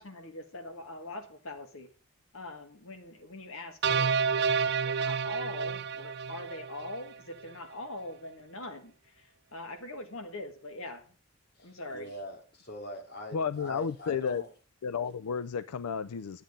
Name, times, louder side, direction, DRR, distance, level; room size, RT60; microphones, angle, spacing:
voice 1, 0.0-1.9 2.3-11.1 11.6-12.1, left 1 dB, 65° left, 1.5 m, -43 dB
sound 1, 3.8-7.1, right 6 dB, 50° right, 0.5 m, -29 dB
voice 2, 11.6-14.5, left 1 dB, 45° left, 2.6 m, -43 dB
voice 3, 13.3-14.4 14.8-16.4, left 6 dB, 90° left, 0.4 m, -32 dB
10.0 x 9.4 x 5.2 m
head